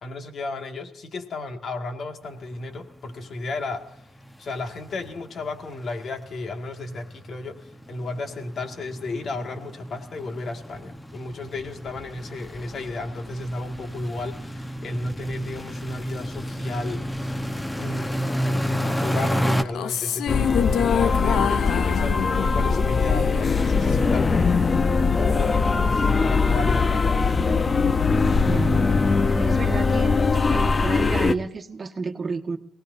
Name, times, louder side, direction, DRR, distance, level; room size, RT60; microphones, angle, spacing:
voice 1, 0.0-4.0 4.4-17.4 17.8-27.3, left 2 dB, 55° left, 5 dB, 2.0 m, -34 dB
sound 1, 2.5-2.6 2.9-3.1 3.4-3.5 3.8-19.6, equal, 10° left, 1.1 m, -31 dB
sound 2, 19.7-24.1, left 9 dB, 75° left, 0.7 m, -27 dB
sound 3, 20.3-31.3, left 4 dB, 30° left, 0.8 m, -21 dB
voice 2, 28.5-28.9 29.3-30.2 30.5-32.6, right 4 dB, 35° right, 4 dB, 1.6 m, -30 dB
28.0 x 18.5 x 2.7 m, 0.74 s
cardioid pair, 90°, 0 cm